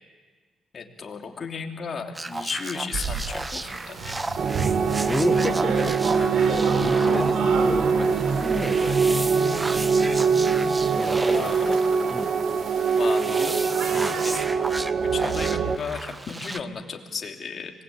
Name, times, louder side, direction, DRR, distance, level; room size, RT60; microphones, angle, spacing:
voice 1, 0.7-4.1 11.2-11.7 13.0-13.8 14.2-14.5 15.0-17.7, left 5 dB, 45° left, 2 dB, 3.0 m, -34 dB
sound 1, 2.2-16.6, right 2 dB, 20° right, 0.9 m, -34 dB
sound 2, 2.9-14.5, right 5 dB, 75° right, 3.4 m, -34 dB
sound 3, 4.4-15.8, right 5 dB, 55° right, 1.3 m, -23 dB
voice 2, 4.7-9.7 11.0-11.8 12.1-12.3 13.3-13.5 13.9-14.2, left 2 dB, 20° left, 7 dB, 1.4 m, -33 dB
25.5 x 20.0 x 8.7 m, 1.4 s
cardioid pair, 90°, 0 cm